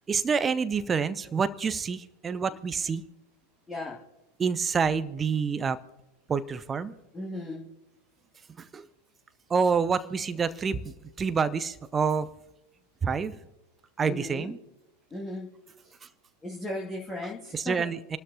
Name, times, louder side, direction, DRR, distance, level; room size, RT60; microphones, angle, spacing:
voice 1, 0.1-3.1 4.4-5.8 6.3-6.9 8.6-8.9 9.5-12.3 13.0-13.4 14.0-14.6 16.0-16.1 17.5-18.2, right 5 dB, 20° right, 15 dB, 0.6 m, -27 dB
voice 2, 3.7-4.0 7.1-7.7 14.0-14.6 15.1-15.5 15.8-16.0 16.4-17.9, left 1 dB, 15° left, -3 dB, 2.1 m, -36 dB
28.0 x 12.5 x 2.8 m, 0.95 s
figure-of-eight pair, 90°, 0 cm